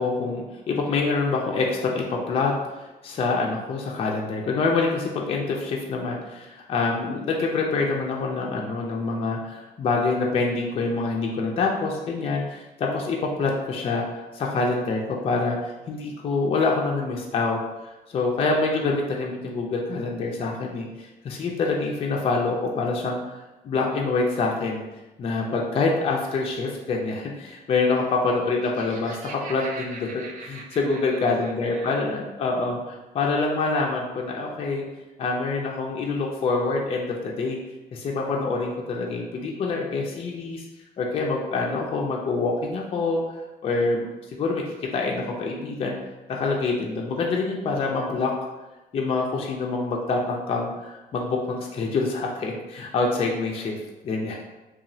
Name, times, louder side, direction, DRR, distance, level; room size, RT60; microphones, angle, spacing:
voice 1, 0.0-2.5 2.8-14.0 14.3-23.2 23.6-24.8 25.2-34.8 35.2-37.6 37.9-40.7 41.0-43.2 43.6-46.0 46.3-48.3 48.9-53.8 54.0-54.4, left 3 dB, 35° left, -1 dB, 0.4 m, -26 dB
Laughter, 28.4-32.2, right 4 dB, 50° right, 0.4 m, -42 dB
2.9 x 2.3 x 2.6 m, 1.1 s
cardioid pair, 110°, 17 cm